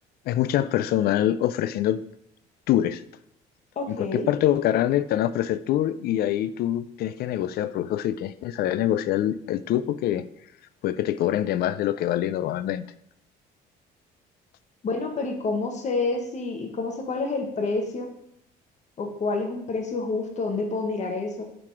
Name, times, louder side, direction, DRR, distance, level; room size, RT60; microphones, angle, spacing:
voice 1, 0.3-2.0 2.7-3.0 3.9-10.2 10.8-12.9, left 12 dB, 65° left, 15 dB, 0.4 m, -25 dB
voice 2, 3.7-4.3 14.8-18.1 19.0-21.4, left 3 dB, 45° left, 3 dB, 1.4 m, -28 dB
7.4 x 4.0 x 4.9 m, 0.74 s
cardioid pair, 110°, 17 cm